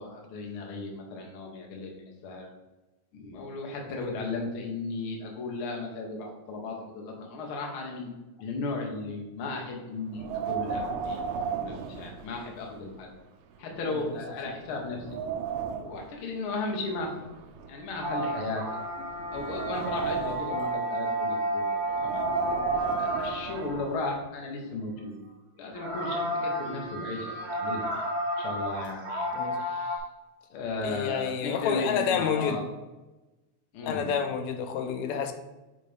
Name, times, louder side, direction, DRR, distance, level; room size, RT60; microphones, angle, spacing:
voice 1, 0.0-2.0 2.2-2.5 3.1-8.1 8.4-11.2 11.6-13.1 13.6-15.0 15.8-17.2 17.7-18.6 19.3-21.6 21.9-22.2 23.0-25.1 25.6-28.0 28.4-29.3 29.6-30.0 30.5-32.6 33.7-34.1, left 3 dB, 55° left, 0 dB, 1.6 m, -35 dB
Wind, 10.1-12.7 13.1-13.2 13.9-14.0 14.5-16.1 16.9-18.5 19.0-20.6 21.9-24.0, right 6 dB, 80° right, 1.5 m, -34 dB
voice 2, 13.9-14.2 14.5-14.6 27.0-27.1 29.3-29.7 30.8-32.6 33.8-35.3, left 7 dB, 80° left, 7 dB, 1.8 m, -29 dB
sound 1, 18.0-24.0 25.7-30.0, equal, 60° right, 1.2 m, -32 dB
9.2 x 4.1 x 3.5 m, 1.1 s
omnidirectional pair, 3.4 m